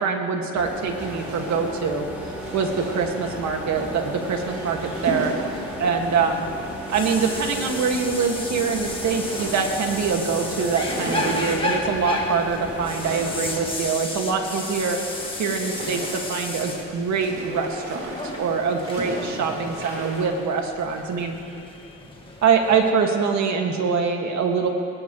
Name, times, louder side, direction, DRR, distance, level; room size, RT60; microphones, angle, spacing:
voice 1, 0.0-5.3 5.8-6.5 6.9-15.0 15.4-18.1 18.4-21.4 22.4-24.7, right 5 dB, 65° right, 2 dB, 2.1 m, -24 dB
sound 1, 0.6-13.7, equal, 5° right, 4.0 m, -36 dB
sound 2, 1.0-20.3, right 1 dB, 45° right, 4.4 m, -37 dB
sound 3, 3.7-22.9, left 2 dB, 15° left, 2.1 m, -34 dB
20.0 x 20.0 x 3.2 m, 2.8 s
cardioid pair, 90°, 30 cm